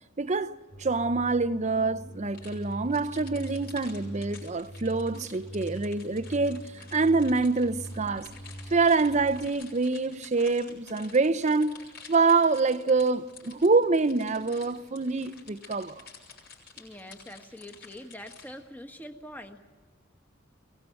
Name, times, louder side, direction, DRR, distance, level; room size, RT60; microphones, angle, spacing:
voice 1, 0.2-6.6 6.9-8.3 8.7-11.8 12.1-16.1, right 3 dB, 35° right, 0.7 m, -26 dB
sound 1, 0.7-9.5, right 1 dB, 35° left, 3.7 m, -42 dB
sound 2, 2.3-18.5, left 5 dB, 55° left, 6.2 m, -50 dB
voice 2, 16.8-19.6, left 1 dB, 10° left, 1.5 m, -44 dB
23.5 x 18.0 x 7.9 m
head